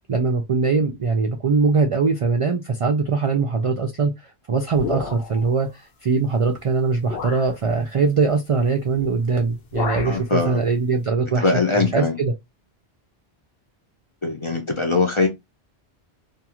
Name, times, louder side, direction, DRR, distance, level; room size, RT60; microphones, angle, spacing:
voice 1, 0.1-12.3, right 4 dB, 60° right, 0.3 m, -22 dB
sound 1, 4.7-5.5 6.4-6.5 7.1-7.5 8.9-9.2 9.4-10.2, left 5 dB, 70° left, 0.9 m, -31 dB
voice 2, 10.0-10.6 11.4-12.2 14.2-15.3, left 3 dB, 35° left, 0.5 m, -21 dB
2.6 x 2.3 x 2.9 m
omnidirectional pair, 1.1 m